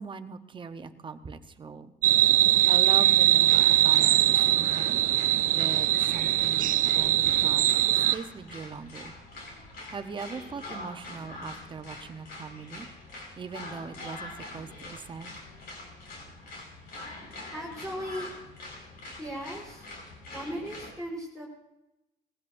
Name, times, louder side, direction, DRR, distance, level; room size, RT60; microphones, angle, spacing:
voice 1, 0.0-1.9 2.7-5.0 5.5-9.1 9.9-12.9 13.4-15.3, right 5 dB, 30° right, 8 dB, 0.9 m, -40 dB
sound 1, 2.0-8.1, right 13 dB, 55° right, 0.4 m, -22 dB
sound 2, 3.3-20.9, left 2 dB, 65° left, 5.2 m, -44 dB
voice 2, 17.5-18.3 19.2-19.9 20.3-21.4, equal, 5° left, -5 dB, 4.6 m, -37 dB
20.5 x 15.5 x 2.6 m, 0.91 s
cardioid pair, 110°, 17 cm